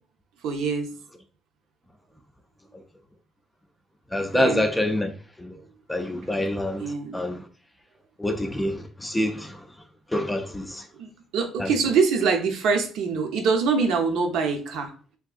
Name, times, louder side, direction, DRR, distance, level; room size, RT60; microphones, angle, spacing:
voice 1, 0.4-0.9 4.3-4.6 6.8-7.2 11.0-11.1 11.3-14.9, right 5 dB, 85° right, 0.6 m, -24 dB
voice 2, 4.1-5.1 5.4-5.6 5.9-7.4 8.2-9.6 10.1-10.8 11.6-11.7, left 1 dB, 5° left, 0.3 m, -26 dB
3.5 x 2.6 x 2.3 m
cardioid pair, 150°, 0 cm